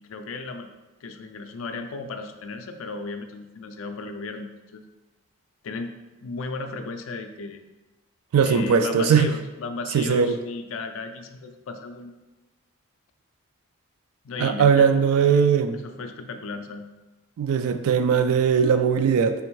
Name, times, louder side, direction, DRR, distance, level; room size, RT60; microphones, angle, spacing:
voice 1, 0.1-0.7 1.0-4.8 5.6-5.9 6.2-7.6 8.4-12.1 14.2-14.9 15.7-16.9, left 3 dB, 65° left, 7 dB, 0.4 m, -35 dB
voice 2, 8.3-9.3 9.9-10.4 14.4-15.8 17.4-19.3, right 6 dB, 75° right, 9 dB, 0.3 m, -19 dB
3.5 x 2.6 x 4.5 m, 1.1 s
head